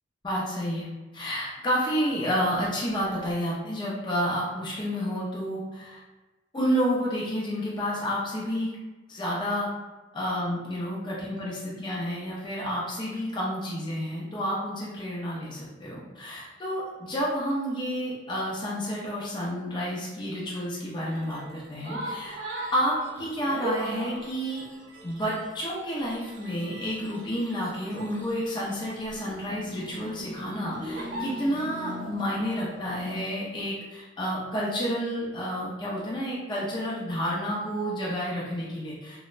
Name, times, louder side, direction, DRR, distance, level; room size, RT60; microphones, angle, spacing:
voice 1, 0.2-0.9 1.1-6.0 6.5-8.7 9.1-9.7 10.1-24.7 25.0-39.3, equal, 25° left, -6 dB, 0.5 m, -30 dB
sound 1, 21.1-33.2, right 1 dB, 85° right, 0.6 m, -39 dB
3.2 x 2.0 x 2.4 m, 1.2 s
head